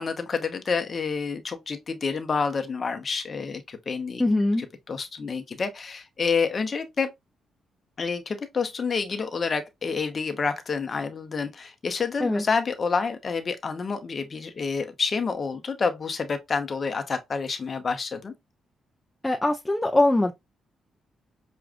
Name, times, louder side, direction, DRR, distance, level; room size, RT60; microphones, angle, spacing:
voice 1, 0.0-4.2 4.9-7.1 8.0-18.3, left 5 dB, 40° left, 0.8 m, -28 dB
voice 2, 4.2-4.7 12.2-12.4 19.2-20.3, left 2 dB, 15° left, 0.5 m, -22 dB
6.0 x 2.4 x 2.4 m
cardioid pair, 85°, 0 cm